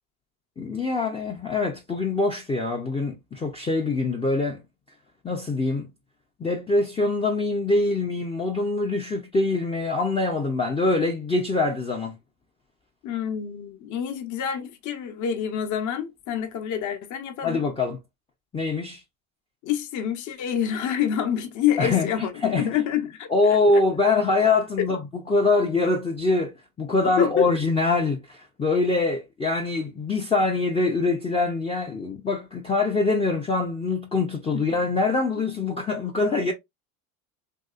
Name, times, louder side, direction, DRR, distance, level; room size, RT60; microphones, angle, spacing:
voice 1, 0.6-4.6 5.2-5.9 6.4-12.1 17.4-18.0 18.5-19.0 21.8-22.7 23.3-36.5, left 3 dB, 15° left, 0.5 m, -24 dB
voice 2, 13.0-17.6 19.6-23.8 24.8-24.9 27.2-27.5 34.5-34.6, left 9 dB, 45° left, 0.8 m, -27 dB
2.9 x 2.7 x 2.3 m
supercardioid pair, 100°, 43 cm